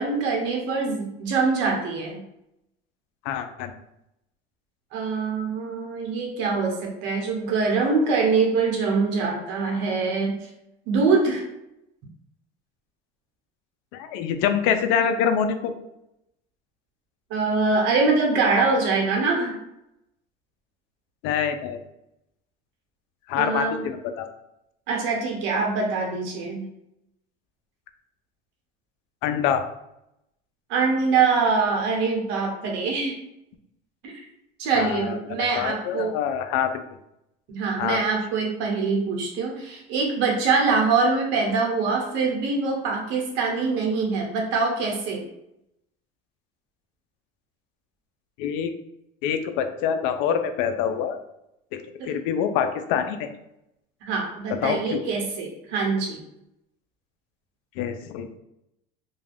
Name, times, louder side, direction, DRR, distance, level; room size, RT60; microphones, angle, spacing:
voice 1, 0.0-2.2 4.9-10.3 10.9-11.4 17.3-19.6 23.3-23.8 24.9-26.6 30.7-33.2 34.0-34.1 34.6-36.1 37.5-45.3 52.0-52.1 54.0-56.2, right 4 dB, 65° right, 0 dB, 0.9 m, -24 dB
voice 2, 3.3-3.7 13.9-15.7 21.2-21.8 23.3-24.3 29.2-29.6 34.8-35.2 35.6-36.8 37.8-38.0 48.4-48.7 49.2-51.2 51.7-51.8 52.0-53.3 54.5-55.0 57.8-58.4, left 8 dB, 75° left, 7 dB, 0.4 m, -25 dB
2.4 x 2.2 x 3.3 m, 0.82 s
cardioid pair, 125°, 21 cm